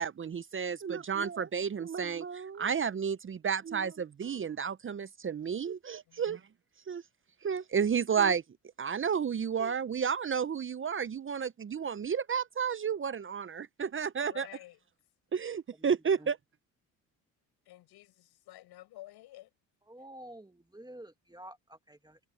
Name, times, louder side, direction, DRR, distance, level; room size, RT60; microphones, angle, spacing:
voice 1, 0.0-6.4 6.9-7.0 7.4-8.4 8.8-14.5 15.3-16.4, right 7 dB, 35° right, 0.8 m, -31 dB
voice 2, 6.1-6.4 14.2-14.8 17.6-19.5, left 16 dB, 75° left, 7.9 m, -51 dB
voice 3, 19.9-22.2, right 1 dB, 10° right, 2.2 m, -49 dB
supercardioid pair, 70°, 39 cm